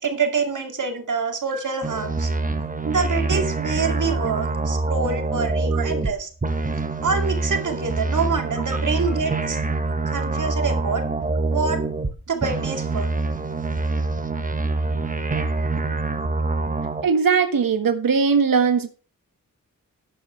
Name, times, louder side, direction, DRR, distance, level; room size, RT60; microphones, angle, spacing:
voice 1, 0.0-2.3 2.8-6.3 7.0-9.6 10.1-11.0 11.5-11.8 12.3-13.1, right 5 dB, 60° right, 5 dB, 2.4 m, -26 dB
sound 1, 1.8-6.1 6.4-12.1 12.4-17.0, right 3 dB, 25° right, 1.4 m, -25 dB
voice 2, 17.0-18.9, right 5 dB, 80° right, 8 dB, 1.5 m, -20 dB
13.0 x 9.5 x 3.2 m, 0.36 s
wide cardioid pair, 120°, 34 cm